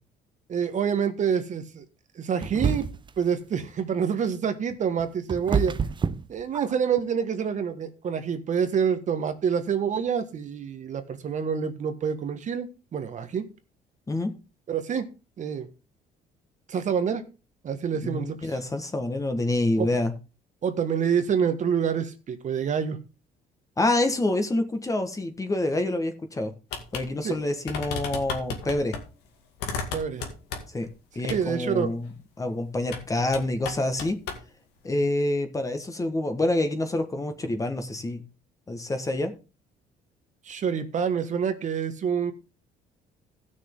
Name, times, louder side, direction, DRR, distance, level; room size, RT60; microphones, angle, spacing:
voice 1, 0.5-1.8 2.1-2.9 3.2-5.7 6.3-13.5 14.7-15.7 16.7-17.2 17.6-18.6 19.8-19.9 20.6-23.0 27.2-27.4 29.9-30.3 31.3-31.9 40.4-42.3, right 7 dB, 45° right, 8 dB, 1.4 m, -27 dB
sound 1, 2.4-3.2 4.7-7.0, right 5 dB, 30° right, 0.7 m, -28 dB
voice 2, 18.0-20.1 23.8-26.5 26.9-29.0 30.7-30.9 31.1-34.2 34.8-38.2 38.7-39.3, left 2 dB, 20° left, 7 dB, 1.5 m, -27 dB
Clicky Knob Turning, 26.7-27.1 27.3-27.4 27.7-29.0 29.6-30.9 31.3-31.4 32.9-33.1 33.3-34.4, left 5 dB, 90° left, 2.2 m, -34 dB
16.0 x 6.5 x 3.7 m, 0.30 s
cardioid pair, 110°, 17 cm